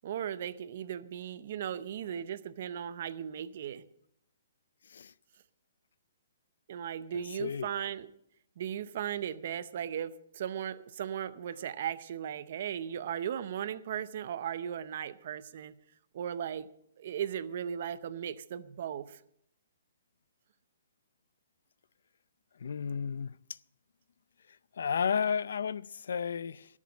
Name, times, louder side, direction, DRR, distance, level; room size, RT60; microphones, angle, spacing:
voice 1, 0.0-3.8 6.7-8.1 8.6-15.7 16.1-16.7 17.0-19.2, right 9 dB, 40° right, 0.7 m, -37 dB
voice 2, 22.6-23.3 24.8-26.7, left 6 dB, 70° left, 0.4 m, -32 dB
13.5 x 7.4 x 8.5 m
hypercardioid pair, 175°, 0 cm